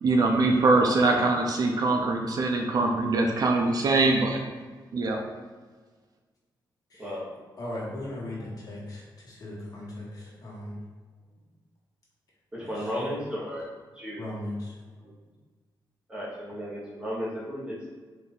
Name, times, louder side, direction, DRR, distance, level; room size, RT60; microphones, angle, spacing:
voice 1, 0.0-4.4 4.9-5.2, right 3 dB, 50° right, 2 dB, 0.5 m, -23 dB
voice 2, 7.6-10.8 12.6-13.1 14.2-14.7, left 1 dB, 50° left, -6 dB, 1.5 m, -38 dB
voice 3, 12.5-13.7 14.0-14.3 16.1-17.9, equal, 15° right, -8 dB, 1.5 m, -34 dB
3.8 x 2.8 x 3.9 m, 1.4 s
wide cardioid pair, 130°, 8 cm